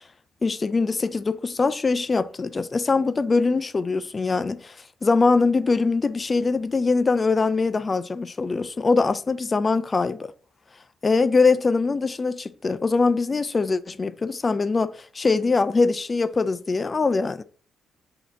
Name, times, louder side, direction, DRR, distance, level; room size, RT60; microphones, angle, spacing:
voice 1, 0.4-4.7 5.0-10.3 11.0-17.4, left 4 dB, 30° left, 0.4 m, -22 dB
4.1 x 2.8 x 4.4 m
cardioid pair, 90°, 0 cm